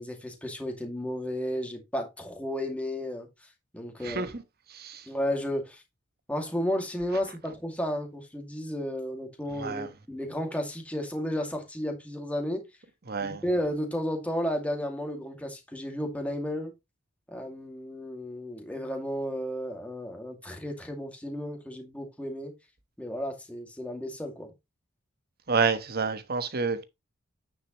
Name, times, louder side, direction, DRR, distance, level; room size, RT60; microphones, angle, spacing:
voice 1, 0.0-3.3 3.7-4.3 5.1-5.8 6.3-12.6 13.2-16.7 17.3-22.5 23.0-24.5, equal, 5° left, 2.2 m, -33 dB
voice 2, 4.0-4.4 4.7-5.0 9.6-9.9 13.1-13.4 25.5-26.8, right 5 dB, 50° right, 1.2 m, -29 dB
9.5 x 6.5 x 3.0 m
head